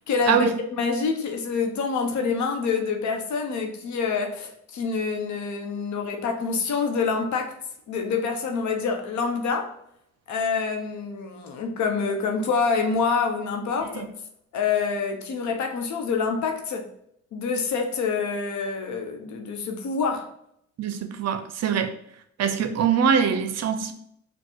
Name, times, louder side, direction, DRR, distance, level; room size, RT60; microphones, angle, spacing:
voice 1, 0.1-0.5 0.8-7.6 7.9-9.7 10.3-14.1 14.5-16.9 17.3-20.3, left 5 dB, 70° left, 0.9 m, -26 dB
voice 2, 20.8-21.9 22.4-23.9, right 7 dB, 60° right, 0.6 m, -23 dB
4.4 x 2.3 x 4.5 m
cardioid pair, 90°, 30 cm